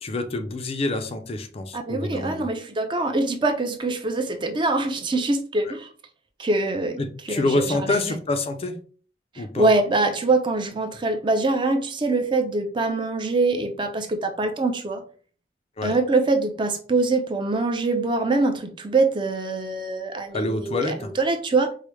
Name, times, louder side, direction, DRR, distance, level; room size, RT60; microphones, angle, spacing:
voice 1, 0.0-2.4 5.7-5.8 7.0-8.7 9.4-9.7 15.8-15.9 20.3-21.1, left 2 dB, 35° left, 7 dB, 0.4 m, -27 dB
voice 2, 1.7-5.9 6.4-7.0 7.3-8.1 9.4-15.0 15.8-21.7, right 3 dB, 25° right, 6 dB, 0.4 m, -24 dB
4.7 x 2.0 x 3.1 m, 0.42 s
head